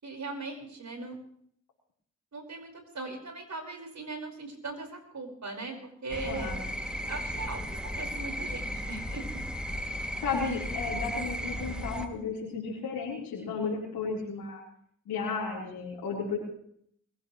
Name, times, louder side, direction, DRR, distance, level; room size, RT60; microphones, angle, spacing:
voice 1, 0.0-1.2 2.3-6.6 7.1-9.4, right 3 dB, 55° right, 2 dB, 5.5 m, -39 dB
sound 1, 6.1-12.1, equal, 5° right, 2.7 m, -35 dB
voice 2, 6.2-6.7 10.2-14.6 15.1-16.4, left 4 dB, 90° left, -6 dB, 4.4 m, -33 dB
24.0 x 15.5 x 3.3 m, 0.65 s
supercardioid pair, 40°, 35 cm